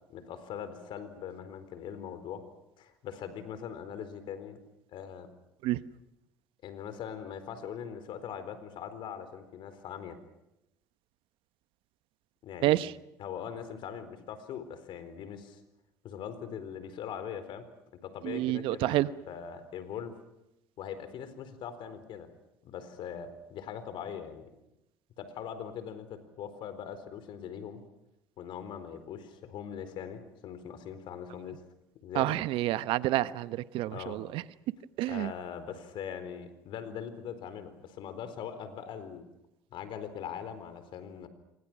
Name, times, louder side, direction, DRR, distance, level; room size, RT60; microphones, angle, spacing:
voice 1, 0.1-2.5 2.8-4.6 4.9-5.3 6.6-10.2 12.4-12.8 13.2-15.6 16.0-17.7 18.0-20.2 20.8-22.3 22.6-24.5 25.2-27.8 28.4-31.6 32.0-32.4 33.9-34.2 35.1-39.3 39.7-41.3, left 8 dB, 60° left, 11 dB, 4.2 m, -41 dB
voice 2, 18.2-19.1 32.1-34.4 35.0-35.3, right 16 dB, 65° right, 15 dB, 1.0 m, -28 dB
28.0 x 24.0 x 6.2 m, 0.87 s
hypercardioid pair, 70°, 9 cm